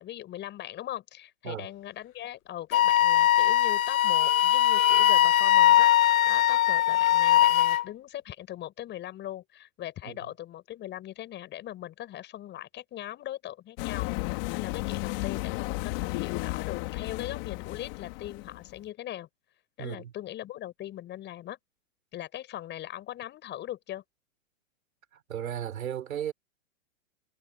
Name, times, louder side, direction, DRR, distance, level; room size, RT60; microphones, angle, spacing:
voice 1, 0.0-19.3 19.8-21.6 22.1-24.0, left 13 dB, 25° left, 7.3 m, -40 dB
Wind instrument woodwind instrument, 2.7-7.8, left 12 dB, 90° left, 0.8 m, -21 dB
sound 1, 13.8-18.8, left 26 dB, 45° left, 3.5 m, -33 dB
voice 2, 19.8-20.1 25.1-26.3, right 10 dB, 80° right, 4.1 m, -35 dB
hypercardioid pair, 140°, 40 cm